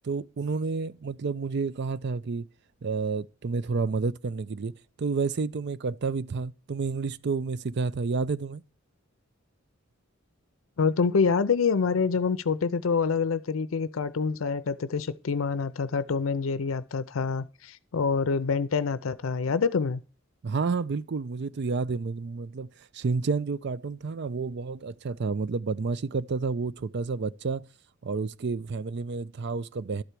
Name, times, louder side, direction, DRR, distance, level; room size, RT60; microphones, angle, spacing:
voice 1, 0.0-2.5 2.8-4.7 5.0-8.6 20.4-22.7 22.9-27.6 28.0-30.0, right 4 dB, 55° right, 0.5 m, -30 dB
voice 2, 10.8-20.0, left 5 dB, 85° left, 0.5 m, -26 dB
12.0 x 4.5 x 8.2 m
head